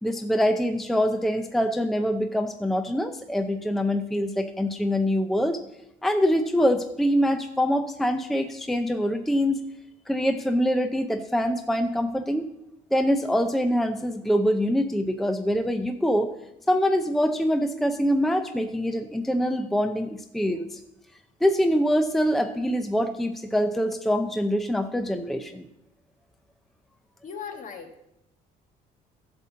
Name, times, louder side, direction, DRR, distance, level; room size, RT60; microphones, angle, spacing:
voice 1, 0.0-5.6 6.0-9.6 10.1-12.5 12.9-16.3 16.7-20.8 21.4-25.7, equal, ahead, 7 dB, 0.5 m, -24 dB
voice 2, 27.2-28.0, left 6 dB, 50° left, 5 dB, 1.5 m, -38 dB
11.0 x 4.2 x 7.3 m, 0.85 s
cardioid pair, 110°, 17 cm